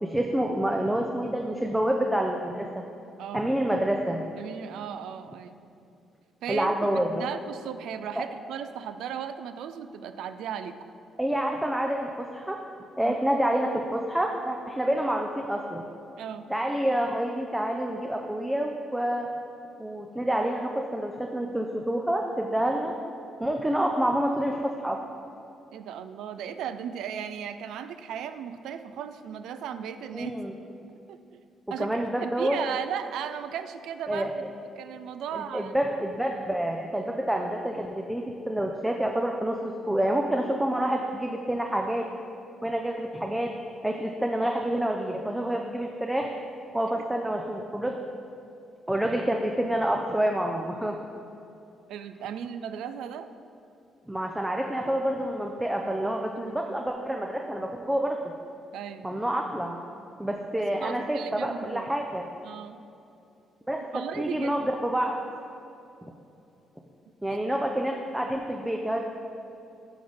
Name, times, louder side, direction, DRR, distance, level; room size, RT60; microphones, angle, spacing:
voice 1, 0.0-2.7 3.3-4.2 6.5-7.2 8.2-8.3 11.2-12.6 13.0-15.9 16.5-19.3 19.8-22.9 23.4-25.0 30.1-30.5 31.8-32.6 34.1-34.3 35.3-42.0 42.6-43.5 43.8-46.3 46.7-47.9 48.9-51.1 54.1-58.2 59.0-59.8 60.2-62.3 63.7-63.9 64.2-65.2 67.2-69.1, right 1 dB, 10° right, 2 dB, 0.5 m, -28 dB
voice 2, 3.2-3.5 4.4-5.6 6.4-10.7 13.0-13.2 16.2-16.5 25.7-30.5 31.1-31.4 31.7-34.4 34.8-35.7 46.9-47.1 51.9-53.3 56.3-56.6 58.7-59.1 60.6-61.9 62.4-62.8 63.9-64.6 67.2-67.6, right 8 dB, 85° right, 11 dB, 0.3 m, -36 dB
11.0 x 3.9 x 3.5 m, 2.7 s
cardioid pair, 90°, 0 cm